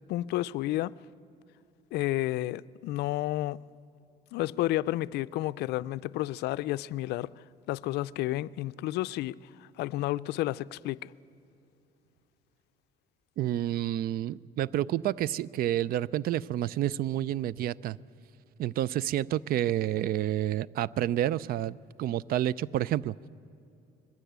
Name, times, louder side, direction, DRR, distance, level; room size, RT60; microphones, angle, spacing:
voice 1, 0.1-0.9 1.9-3.7 4.3-7.3 7.7-11.1, left 16 dB, 80° left, 0.4 m, -31 dB
voice 2, 13.4-18.0 18.6-23.1, right 12 dB, 60° right, 0.4 m, -29 dB
21.5 x 15.0 x 8.1 m
cardioid pair, 110°, 17 cm